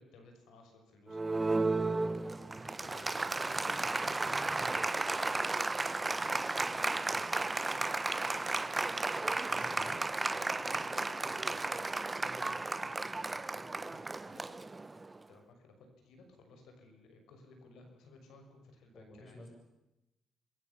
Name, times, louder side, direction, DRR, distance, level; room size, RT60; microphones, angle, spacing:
voice 1, 0.0-5.4 6.2-7.4 9.3-10.0 10.3-14.7 15.3-19.4, left 3 dB, 80° left, 5 dB, 6.3 m, -58 dB
Applause, 1.1-15.2, right 3 dB, 20° right, 0.9 m, -34 dB
voice 2, 9.5-10.0 18.9-19.5, left 1 dB, 30° left, 2 dB, 7.6 m, -51 dB
28.0 x 22.0 x 7.1 m, 0.94 s
cardioid pair, 90°, 0 cm